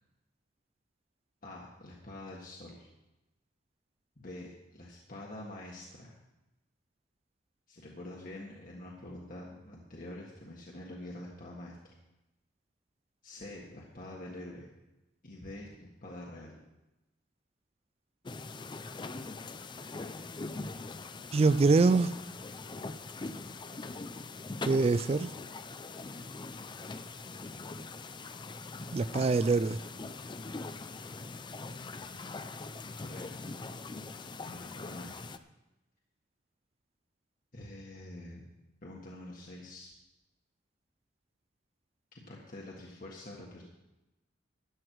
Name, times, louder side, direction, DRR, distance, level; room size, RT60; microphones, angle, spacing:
voice 1, 1.4-2.9 4.2-6.1 7.7-11.8 13.2-14.7 15.2-16.6 32.8-33.4 34.4-35.3 37.5-38.5 38.8-39.9 42.1-43.6, left 1 dB, 50° left, 1.6 m, -46 dB
sound 1, 18.2-35.4, left 3 dB, 25° left, 0.5 m, -42 dB
voice 2, 21.3-22.1 24.6-25.3 28.9-29.8, right 3 dB, 35° right, 0.3 m, -24 dB
14.0 x 9.8 x 4.7 m
head